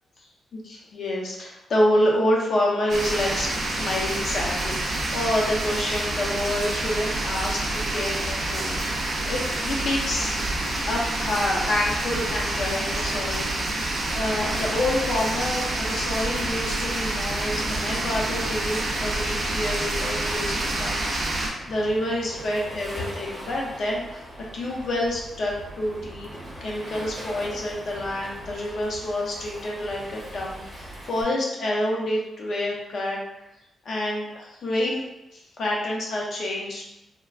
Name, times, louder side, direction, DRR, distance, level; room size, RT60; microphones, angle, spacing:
voice 1, 0.5-10.4 10.9-13.6 14.1-24.2 24.5-26.3 26.6-33.2 33.8-35.0 35.3-36.8, left 1 dB, 55° left, -2 dB, 0.6 m, -28 dB
sound 1, 2.9-21.5, right 2 dB, 40° right, 0.5 m, -27 dB
Waves surf, 17.6-31.2, equal, 5° right, 0.9 m, -41 dB
3.3 x 2.2 x 2.3 m, 0.92 s
wide cardioid pair, 175°, 0 cm